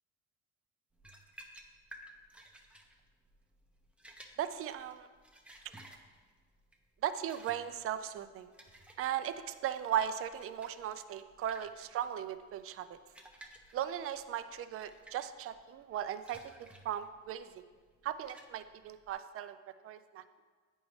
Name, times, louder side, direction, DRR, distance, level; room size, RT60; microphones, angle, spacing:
sound 1, 1.0-19.1, right 1 dB, 5° right, 0.7 m, -57 dB
voice 1, 4.4-5.1 7.0-8.5 9.0-12.9 13.7-16.4 16.8-17.5 18.0-19.6 19.8-20.2, right 10 dB, 45° right, 11 dB, 0.4 m, -37 dB
8.3 x 5.3 x 3.1 m, 1.5 s
cardioid pair, 95°, 33 cm